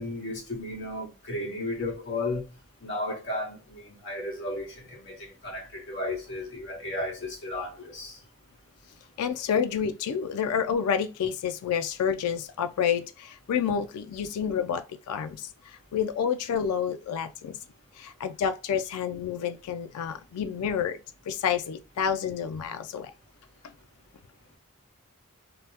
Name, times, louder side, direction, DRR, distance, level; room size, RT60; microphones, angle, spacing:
voice 1, 0.0-2.5 2.8-8.2, left 2 dB, 55° left, 1.2 m, -34 dB
voice 2, 9.2-17.6 18.0-21.0 21.3-23.1, left 7 dB, 85° left, 0.3 m, -29 dB
2.8 x 2.0 x 3.3 m
head